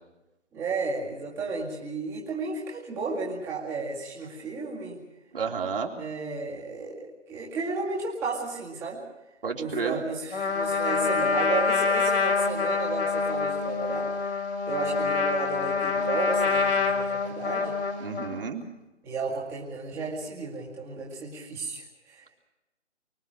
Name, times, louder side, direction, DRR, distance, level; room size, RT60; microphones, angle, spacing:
voice 1, 0.5-5.0 6.0-9.0 9.6-14.1 14.7-17.7 19.0-22.2, right 4 dB, 5° right, -4 dB, 2.2 m, -33 dB
voice 2, 5.3-5.9 9.4-10.0 18.0-18.6, right 5 dB, 50° right, 2 dB, 3.4 m, -31 dB
Trumpet, 10.3-18.4, left 4 dB, 65° left, 4.0 m, -26 dB
24.0 x 23.5 x 6.3 m, 1.0 s
figure-of-eight pair, 165°, 36 cm